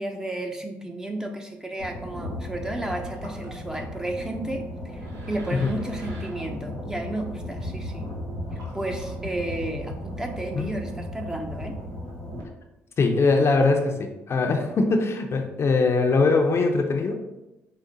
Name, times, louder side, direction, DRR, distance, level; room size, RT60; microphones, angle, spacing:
voice 1, 0.0-4.6 4.9-5.0 5.3-8.1 8.7-11.8, right 1 dB, 10° right, 3 dB, 0.7 m, -32 dB
underwater ambience, 1.8-12.4, left 1 dB, 80° right, 1.1 m, -35 dB
voice 2, 13.0-17.2, left 3 dB, 50° left, 4 dB, 0.6 m, -22 dB
4.8 x 2.1 x 3.9 m, 1.0 s
supercardioid pair, 55°, 6 cm